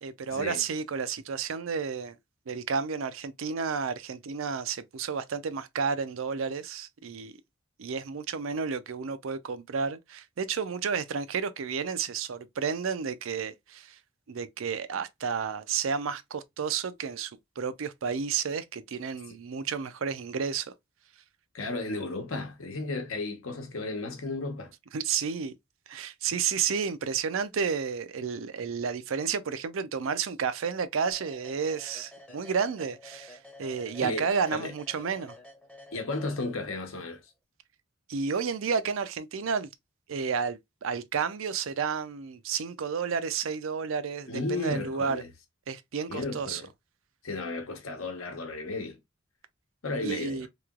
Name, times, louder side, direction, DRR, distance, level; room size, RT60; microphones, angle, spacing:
voice 1, 0.0-2.2 2.5-7.3 7.8-14.0 14.3-20.7 24.9-25.5 25.9-35.4 38.1-39.7 40.1-45.2 45.7-46.6 50.0-50.5, right 6 dB, 80° right, 0.5 m, -31 dB
voice 2, 21.5-24.7 34.0-34.7 35.9-37.2 44.3-45.3 46.1-46.7 47.2-49.0 49.8-50.5, left 3 dB, 80° left, 0.9 m, -34 dB
sound 1, 31.1-36.9, left 1 dB, 5° left, 0.6 m, -50 dB
3.1 x 2.9 x 2.3 m
head